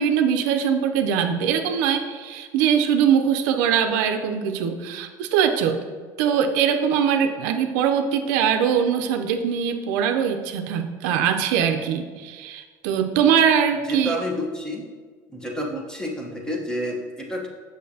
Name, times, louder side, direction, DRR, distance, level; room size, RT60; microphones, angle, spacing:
voice 1, 0.0-5.8 6.2-14.2, right 8 dB, 80° right, 6 dB, 0.5 m, -22 dB
voice 2, 13.8-14.9 15.3-17.5, equal, 5° left, 0 dB, 1.0 m, -29 dB
6.4 x 6.2 x 2.8 m, 1.5 s
supercardioid pair, 120°, 10 cm